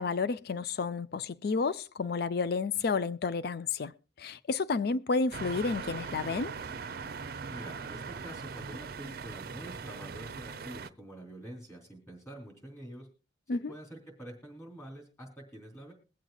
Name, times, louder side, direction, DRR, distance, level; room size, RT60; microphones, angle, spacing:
voice 1, 0.0-3.9 4.2-6.5 13.5-13.7, left 4 dB, 60° left, 0.5 m, -31 dB
sound 1, 5.3-10.9, right 5 dB, 55° right, 0.5 m, -40 dB
voice 2, 7.5-13.1 13.5-15.9, right 1 dB, 15° left, 3.5 m, -46 dB
22.0 x 7.6 x 2.3 m
head